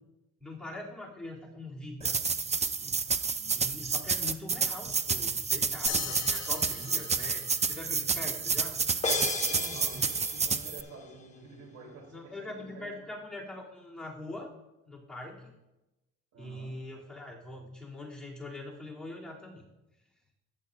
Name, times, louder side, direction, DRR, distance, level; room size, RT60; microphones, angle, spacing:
voice 1, 0.4-2.2 3.5-8.8 12.1-14.5 14.8-15.5 16.4-19.6, left 2 dB, 5° left, -7 dB, 2.9 m, -43 dB
sound 1, 2.0-10.8, right 5 dB, 20° right, 0.5 m, -30 dB
voice 2, 3.3-3.8 9.4-13.1 16.3-16.8, right 3 dB, 80° right, -1 dB, 3.5 m, -49 dB
sound 2, 5.9-8.6, left 11 dB, 60° left, 0.7 m, -41 dB
sound 3, 9.0-10.8, left 3 dB, 25° left, 1.5 m, -34 dB
14.5 x 9.9 x 2.6 m, 0.99 s
cardioid pair, 90°, 30 cm